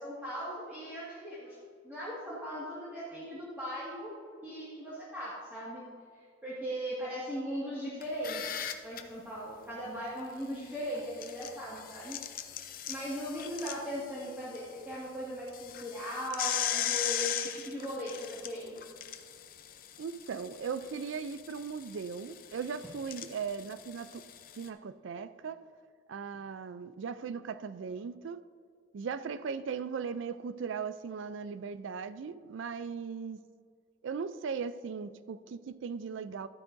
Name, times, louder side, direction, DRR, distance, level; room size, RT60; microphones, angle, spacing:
voice 1, 0.0-1.6 1.8-4.1 4.4-5.8 6.4-8.4 8.8-12.2 12.9-18.8, equal, 10° right, 1.8 m, -38 dB
sound 1, 8.0-9.0 10.9-14.6 14.9-15.0 15.5-24.7, left 10 dB, 45° left, 0.6 m, -38 dB
voice 2, 20.0-24.2 24.5-25.6 26.1-28.4 28.9-33.4 34.0-36.5, right 6 dB, 75° right, 0.4 m, -38 dB
12.5 x 9.5 x 2.6 m
head